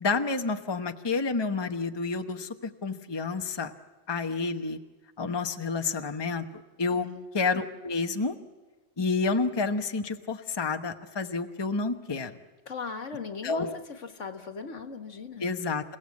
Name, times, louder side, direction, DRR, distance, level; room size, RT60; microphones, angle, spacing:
voice 1, 0.0-3.7 4.1-4.8 5.2-7.1 7.3-8.3 9.0-12.3 13.4-13.8 15.4-16.0, left 4 dB, 20° left, 7 dB, 0.9 m, -29 dB
voice 2, 6.9-7.2 12.7-13.7 14.0-15.5, left 4 dB, 75° left, 8 dB, 1.9 m, -38 dB
28.5 x 16.5 x 8.5 m, 1.3 s
omnidirectional pair, 1.3 m